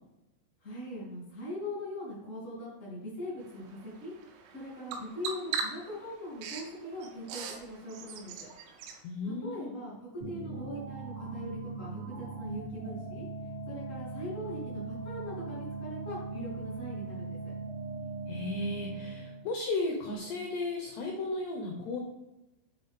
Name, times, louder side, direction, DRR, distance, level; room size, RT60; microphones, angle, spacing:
voice 1, 0.6-4.1 4.5-8.5 9.2-13.2 13.7-17.4, left 1 dB, 70° left, -6 dB, 0.7 m, -41 dB
Bird vocalization bird call bird song, 3.4-9.0, right 6 dB, 85° right, 3.3 m, -41 dB
voice 2, 9.0-9.8 18.3-22.0, left 2 dB, 85° left, 1 dB, 2.3 m, -35 dB
sound 1, 10.2-19.4, right 3 dB, 55° right, 0.8 m, -40 dB
8.3 x 3.9 x 3.5 m, 0.95 s
omnidirectional pair, 5.8 m